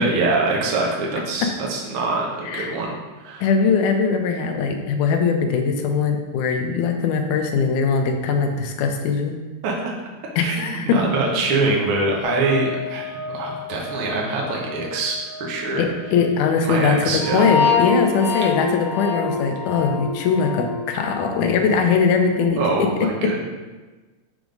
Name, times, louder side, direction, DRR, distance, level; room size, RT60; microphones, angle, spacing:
voice 1, 0.0-2.9 3.2-3.4 9.6-9.9 10.4-15.9 16.6-17.5 21.7-21.8 22.6-23.5, right 3 dB, 80° right, -2 dB, 1.1 m, -24 dB
voice 2, 2.5-2.8 3.4-9.4 10.4-11.0 15.8-22.9 23.2-23.3, left 5 dB, 75° left, 4 dB, 2.0 m, -21 dB
sound 1, 12.2-16.6 16.9-22.4, left 5 dB, 40° right, 0.4 m, -28 dB
6.1 x 3.6 x 5.1 m, 1.2 s
omnidirectional pair, 3.9 m